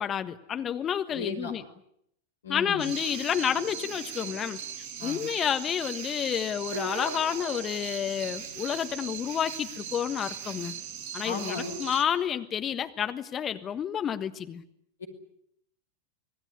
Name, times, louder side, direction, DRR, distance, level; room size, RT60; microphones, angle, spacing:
voice 1, 0.0-1.6 2.5-4.6 5.0-10.8 11.1-14.6, left 9 dB, 25° left, 10 dB, 1.4 m, -30 dB
voice 2, 1.1-1.5 2.4-2.9 5.0-5.2 11.2-11.8 15.0-15.1, left 4 dB, 65° left, 6 dB, 5.4 m, -35 dB
sound 1, 2.8-12.0, right 8 dB, 45° right, 4.8 m, -39 dB
sound 2, 6.6-8.6, right 3 dB, 65° right, 5.7 m, -40 dB
26.0 x 19.5 x 9.7 m, 0.74 s
figure-of-eight pair, 90°, 0 cm